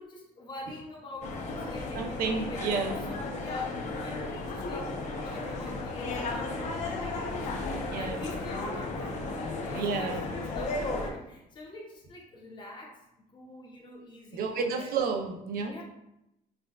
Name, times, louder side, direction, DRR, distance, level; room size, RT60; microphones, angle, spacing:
voice 1, 0.0-2.6 3.1-4.9 5.2-13.0 13.3-15.1 15.6-15.8, left 1 dB, 30° left, -2 dB, 0.9 m, -45 dB
sound 1, 1.2-11.1, left 3 dB, 50° left, 0.7 m, -34 dB
voice 2, 1.9-3.0 7.8-8.2 9.7-10.2 14.3-15.8, right 5 dB, 70° right, 4 dB, 0.6 m, -31 dB
5.7 x 2.3 x 2.3 m, 0.84 s
cardioid pair, 145°, 16 cm